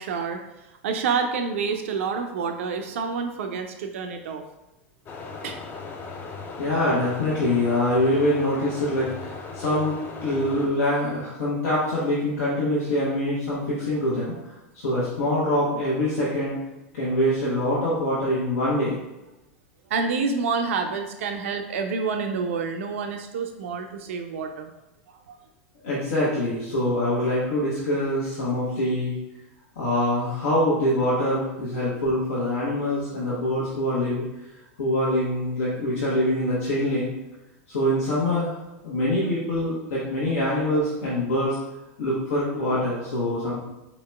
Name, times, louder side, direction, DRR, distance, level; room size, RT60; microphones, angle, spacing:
voice 1, 0.0-4.4 5.4-5.6 19.9-24.7 25.1-25.4, right 5 dB, 75° right, 5 dB, 0.3 m, -28 dB
sound 1, 5.1-10.7, left 4 dB, 30° left, 0.4 m, -38 dB
voice 2, 6.6-14.3 14.7-16.5 16.9-19.0 25.8-29.1 29.8-34.2 34.8-37.1 37.7-38.6 38.8-41.6 42.0-43.6, left 1 dB, 85° left, -9 dB, 1.0 m, -24 dB
4.3 x 2.9 x 2.2 m, 0.97 s
hypercardioid pair, 105°, 7 cm